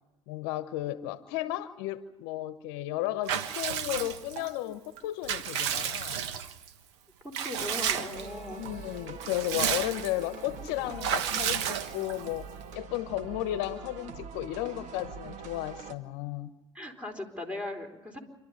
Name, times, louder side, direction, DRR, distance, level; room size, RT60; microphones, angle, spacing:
voice 1, 0.3-6.2 8.6-16.5, left 15 dB, 70° left, 13 dB, 1.0 m, -34 dB
Water / Bathtub (filling or washing) / Liquid, 3.3-4.5 5.0-6.7 7.3-8.3 8.6-8.7 9.1-10.2 11.0-12.3, right 9 dB, 75° right, 1.4 m, -32 dB
voice 2, 7.2-8.6 16.7-18.2, left 2 dB, 10° right, 4 dB, 4.2 m, -38 dB
sound 1, 8.1-16.0, right 5 dB, 55° right, 1.9 m, -44 dB
27.5 x 12.5 x 9.9 m, 1.0 s
hypercardioid pair, 80°, 15 cm